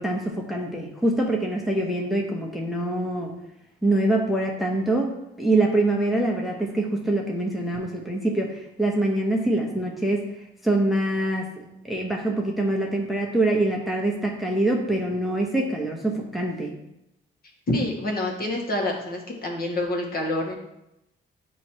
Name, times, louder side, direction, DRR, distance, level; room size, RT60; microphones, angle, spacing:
voice 1, 0.0-3.3 3.8-10.3 10.6-11.5 11.9-16.7, right 2 dB, ahead, 0 dB, 0.9 m, -24 dB
voice 2, 17.7-20.6, left 1 dB, 50° left, 0 dB, 1.5 m, -27 dB
8.3 x 3.1 x 4.4 m, 0.87 s
cardioid pair, 90°, 20 cm